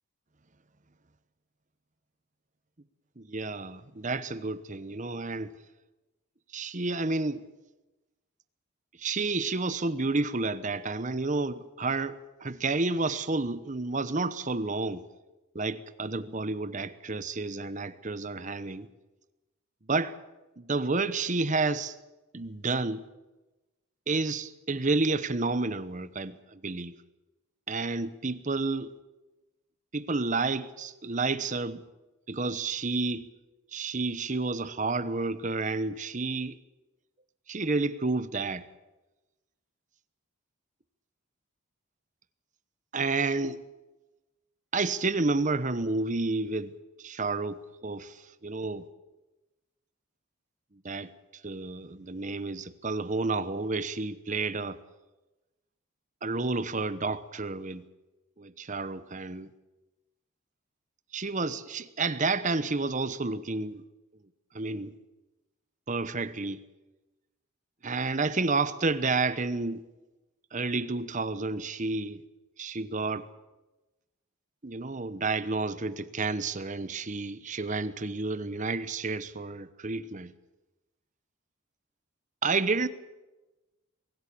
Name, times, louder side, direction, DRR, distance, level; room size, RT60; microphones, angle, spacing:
voice 1, 3.2-5.5 6.5-7.4 9.0-15.0 15.5-18.9 19.9-20.2 20.6-21.9 22.3-23.0 24.1-26.9 27.7-28.9 29.9-31.8 32.3-33.3 33.7-36.6 37.5-38.6 42.9-43.6 44.7-46.7 47.0-48.2 48.4-48.8 50.8-51.1 51.4-54.8 56.2-57.8 58.4-59.5 61.1-63.8 64.5-64.9 65.9-66.6 67.8-69.8 70.5-72.2 72.6-73.3 74.6-80.3 82.4-82.9, right 3 dB, 35° right, 1.0 m, -30 dB
24.0 x 16.0 x 8.6 m
head